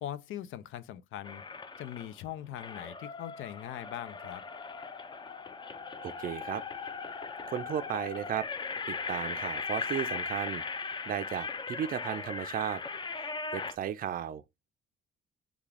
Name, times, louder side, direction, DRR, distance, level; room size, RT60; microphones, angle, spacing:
voice 1, 0.0-1.4 1.8-4.4, left 11 dB, 80° left, 0.4 m, -41 dB
sound 1, 1.2-2.1 2.6-13.8, left 4 dB, 25° left, 0.4 m, -38 dB
voice 2, 6.0-6.6 7.5-8.5 8.9-10.6 11.1-12.8 13.2-14.4, right 9 dB, 45° right, 0.4 m, -35 dB
3.5 x 2.3 x 3.3 m
cardioid pair, 90°, 20 cm